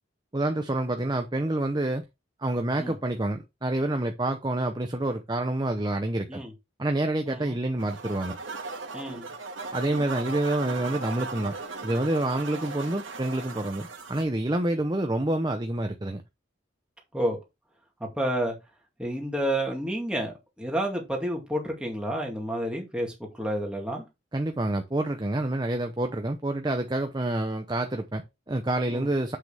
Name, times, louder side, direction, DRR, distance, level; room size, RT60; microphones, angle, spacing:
voice 1, 0.3-2.0 2.4-6.4 6.8-8.4 9.7-11.5 11.8-16.2 24.3-29.4, right 1 dB, 20° right, 0.6 m, -28 dB
voice 2, 7.3-7.6 8.9-9.3 17.1-17.4 18.0-18.6 19.0-24.0 28.9-29.1, right 1 dB, 5° right, 2.2 m, -30 dB
sound 1, 7.8-14.2, right 3 dB, 80° right, 1.8 m, -38 dB
7.7 x 6.3 x 3.4 m
head